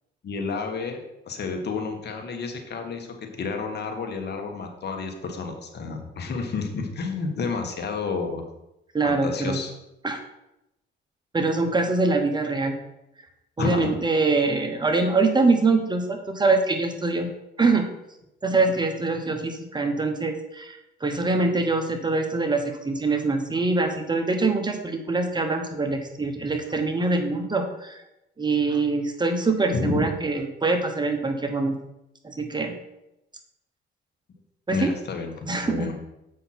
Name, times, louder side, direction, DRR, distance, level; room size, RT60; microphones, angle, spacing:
voice 1, 0.2-8.5 9.0-9.7 13.6-13.9 29.7-30.1 34.7-35.9, left 4 dB, 55° left, 4 dB, 1.4 m, -30 dB
voice 2, 8.9-9.6 10.0-10.2 11.3-12.7 13.6-17.3 17.6-17.8 18.4-28.0 28.4-31.8 32.2-32.8 34.7-34.9 35.5-35.9, right 3 dB, 20° right, 5 dB, 1.1 m, -24 dB
7.5 x 5.7 x 4.3 m, 0.88 s
cardioid pair, 90°, 20 cm